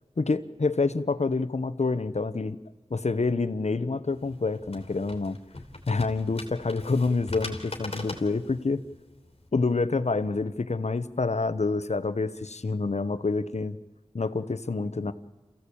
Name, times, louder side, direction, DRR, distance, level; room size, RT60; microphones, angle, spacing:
voice 1, 0.2-2.6 2.9-5.4 5.9-8.8 9.5-13.8 14.1-15.1, left 3 dB, 85° left, 13 dB, 1.0 m, -27 dB
sound 1, 4.1-9.5, left 2 dB, 60° left, 3.2 m, -41 dB
28.0 x 15.5 x 8.7 m, 1.2 s
wide cardioid pair, 45°, 11 cm